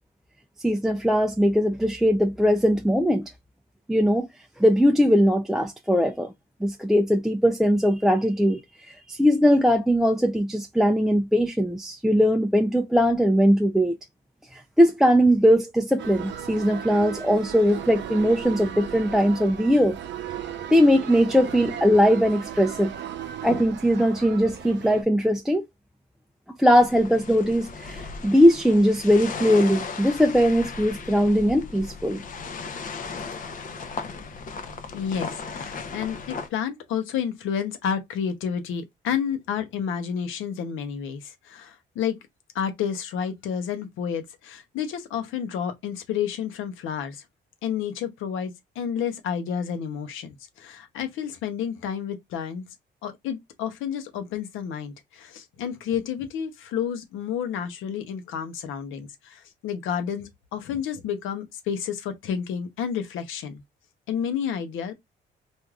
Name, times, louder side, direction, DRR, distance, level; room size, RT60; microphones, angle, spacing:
voice 1, 0.6-3.2 3.9-4.3 4.6-6.3 6.6-14.0 14.5-20.0 20.7-22.9 23.4-25.6 26.6-32.2, equal, ahead, 0.3 m, -20 dB
sound 1, 16.0-25.0, right 9 dB, 65° right, 0.6 m, -36 dB
sound 2, 26.7-36.5, left 4 dB, 45° left, 0.6 m, -36 dB
voice 2, 34.9-42.2 42.5-47.2 47.6-52.6 53.0-63.6 64.1-64.9, left 8 dB, 85° left, 0.8 m, -30 dB
3.2 x 2.5 x 2.3 m
cardioid pair, 90°, 20 cm